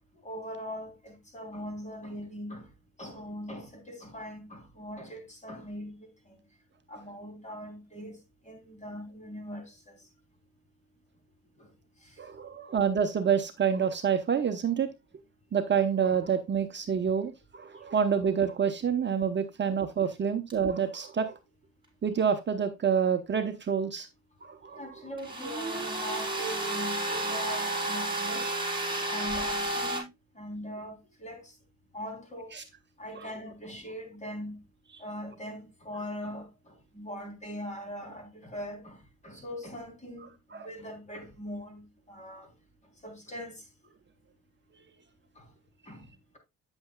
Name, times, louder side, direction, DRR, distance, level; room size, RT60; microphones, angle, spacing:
voice 1, 0.2-2.7 3.0-6.4 6.9-8.2 8.4-9.9 11.6-11.7 12.0-12.2 24.7-28.5 29.1-30.1 30.4-31.5 31.9-32.5 33.0-34.6 35.0-39.0 39.2-42.5 43.0-43.6 45.4-45.5 45.9-46.0, equal, 25° left, 3.5 m, -41 dB
voice 2, 12.2-14.9 15.5-21.4 22.0-24.1 24.4-24.8, right 7 dB, 40° right, 0.9 m, -27 dB
sound 1, 20.5-20.6 25.2-30.0, right 2 dB, 15° right, 5.5 m, -31 dB
8.9 x 7.8 x 2.3 m
cardioid pair, 90°, 30 cm